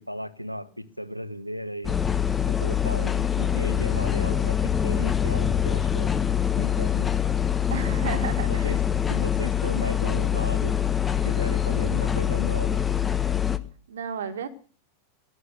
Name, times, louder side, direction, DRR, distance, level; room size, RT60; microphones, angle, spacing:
voice 1, 0.0-2.0 2.5-6.1 6.6-7.1 8.5-8.8 9.1-10.7 11.2-12.8, equal, 90° right, 1.2 m, -35 dB
sound 1, 1.8-13.6, left 9 dB, 15° left, 1.2 m, -24 dB
voice 2, 7.7-8.8 13.9-14.5, right 6 dB, 65° right, 1.9 m, -33 dB
17.5 x 12.0 x 6.7 m
figure-of-eight pair, 90°, 0 cm